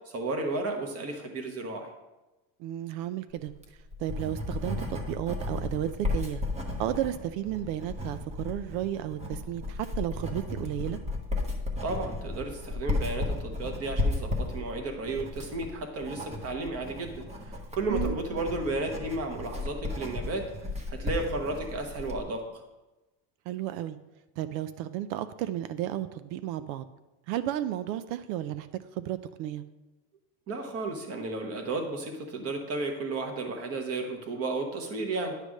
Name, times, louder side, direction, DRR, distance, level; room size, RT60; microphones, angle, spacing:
voice 1, 0.1-1.9 11.8-20.5 20.9-22.4 30.5-35.3, right 2 dB, 30° right, 4 dB, 1.1 m, -33 dB
voice 2, 2.6-3.5 4.0-6.4 6.8-11.0 17.9-18.2 23.5-24.0 24.4-26.8 27.3-28.7 28.9-29.6, right 12 dB, 90° right, 12 dB, 0.6 m, -33 dB
Writing, 3.5-22.2, left 2 dB, 15° right, 0.7 m, -34 dB
9.9 x 3.3 x 6.3 m, 1.1 s
cardioid pair, 155°, 48 cm